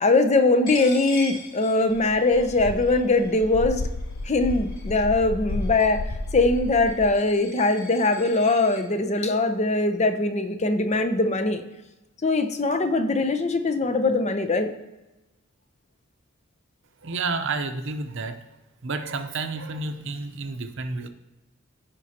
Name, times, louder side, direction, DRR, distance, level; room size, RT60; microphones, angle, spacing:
voice 1, 0.0-3.9 4.2-11.6 12.2-14.7, left 2 dB, 35° left, 8 dB, 0.7 m, -22 dB
Coin (dropping), 0.7-8.8, left 1 dB, 65° left, 3.2 m, -42 dB
sound 1, 1.9-7.1, left 2 dB, 80° left, 0.6 m, -32 dB
voice 2, 17.0-18.4 18.8-21.1, right 3 dB, 60° right, 7 dB, 0.8 m, -30 dB
14.5 x 5.3 x 2.9 m, 1.0 s
head